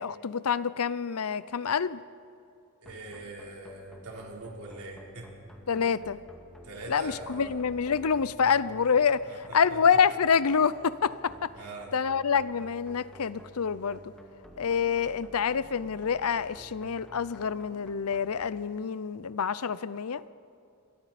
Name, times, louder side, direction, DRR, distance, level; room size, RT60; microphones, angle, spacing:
voice 1, 0.0-2.0 5.7-6.2 6.9-9.2 9.5-11.5 11.9-14.0 14.6-20.2, left 6 dB, 80° left, 16 dB, 0.6 m, -27 dB
sound 1, 2.8-18.5, equal, 5° left, 2.1 m, -51 dB
voice 2, 2.8-5.3 6.6-7.6 9.3-10.0 11.6-11.9, right 2 dB, 85° right, -1 dB, 3.9 m, -43 dB
27.5 x 22.0 x 4.3 m, 2.5 s
head